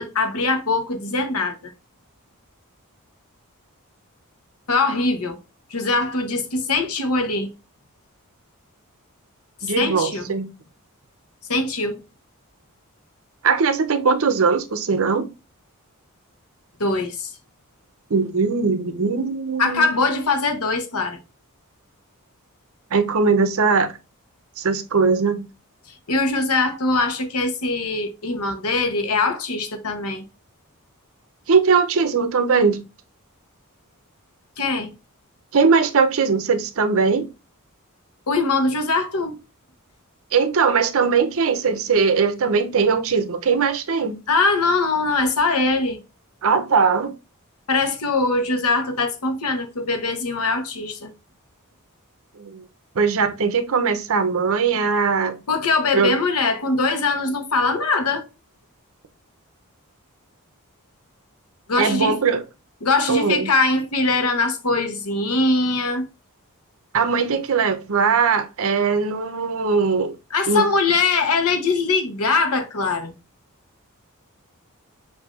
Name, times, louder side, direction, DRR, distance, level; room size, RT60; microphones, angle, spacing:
voice 1, 0.0-1.7 4.7-5.4 5.7-7.5 9.6-10.3 11.5-12.0 16.8-17.3 19.6-21.2 26.1-30.3 34.6-34.9 38.3-39.4 44.3-46.0 47.7-51.1 55.5-58.3 61.7-62.2 62.8-66.1 70.3-73.1, left 3 dB, 85° left, 0.9 m, -22 dB
voice 2, 9.6-10.5 13.4-15.3 18.1-20.0 22.9-23.9 24.6-25.4 31.5-32.8 35.5-37.3 40.3-44.2 46.4-47.1 52.4-52.6 53.0-55.4 55.9-56.1 61.8-62.4 63.1-63.5 66.9-70.2 70.5-70.7, right 5 dB, 65° right, 0.6 m, -20 dB
6.3 x 2.6 x 2.4 m
head